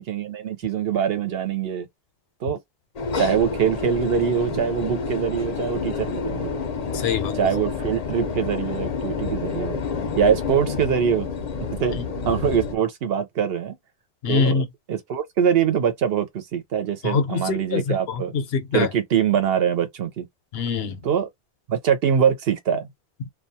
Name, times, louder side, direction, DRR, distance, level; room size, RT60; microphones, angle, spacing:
voice 1, 0.0-1.9 2.4-2.6 3.2-6.6 7.3-9.9 10.2-11.3 11.8-13.8 14.3-14.6 14.9-18.3 18.7-20.3 21.0-21.3 21.7-22.9, right 8 dB, 75° right, 0.9 m, -23 dB
sound 1, 3.0-12.8, left 5 dB, 50° left, 0.5 m, -29 dB
voice 2, 6.9-7.3 14.2-14.7 17.0-17.8 18.1-18.9 20.5-21.0, left 5 dB, 75° left, 0.9 m, -24 dB
2.3 x 2.2 x 2.7 m
omnidirectional pair, 1.0 m